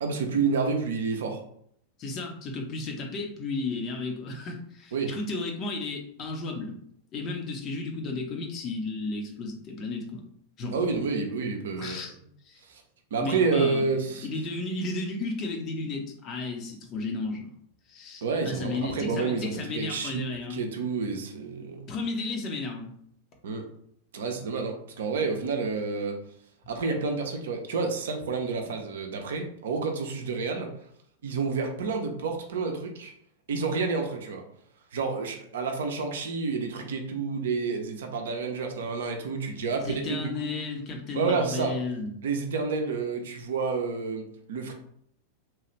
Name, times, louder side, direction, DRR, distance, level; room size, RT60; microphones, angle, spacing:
voice 1, 0.0-1.4 4.9-5.1 10.7-12.0 12.7-12.8 13.1-14.3 18.2-21.8 23.4-23.6 24.1-26.2 26.7-30.7 31.2-33.1 33.5-34.4 34.9-40.5 41.1-41.7 42.2-44.7, right 4 dB, 60° right, 3 dB, 0.5 m, -29 dB
voice 2, 2.0-6.8 7.1-10.2 10.6-10.8 11.8-12.1 12.4-12.6 13.2-13.8 14.2-17.5 17.9-20.6 21.9-22.9 39.8-42.1, left 3 dB, 35° left, 2 dB, 0.7 m, -33 dB
3.0 x 2.3 x 3.0 m, 0.68 s
figure-of-eight pair, 90°, 0 cm